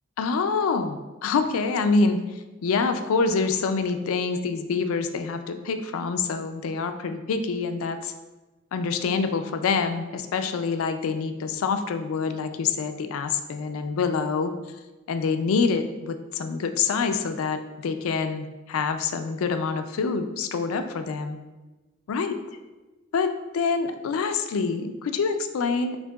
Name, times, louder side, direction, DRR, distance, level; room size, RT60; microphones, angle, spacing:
voice 1, 0.2-2.2 2.6-8.1 8.7-14.5 15.1-21.4 22.1-22.3 23.1-26.0, left 4 dB, 85° left, 8 dB, 0.4 m, -26 dB
6.4 x 2.9 x 2.3 m, 1.2 s
head